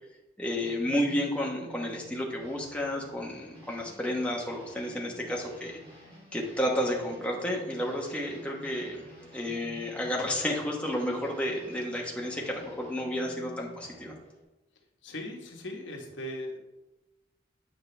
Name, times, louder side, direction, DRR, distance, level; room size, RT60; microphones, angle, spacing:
voice 1, 0.4-5.8 6.3-9.0 9.3-14.1, left 1 dB, 5° left, -2 dB, 1.1 m, -31 dB
sound 1, 0.6-14.4, equal, 30° right, 2.7 m, -51 dB
voice 2, 15.0-16.6, left 1 dB, 80° left, 2 dB, 1.3 m, -38 dB
9.1 x 5.7 x 3.3 m, 1.0 s
head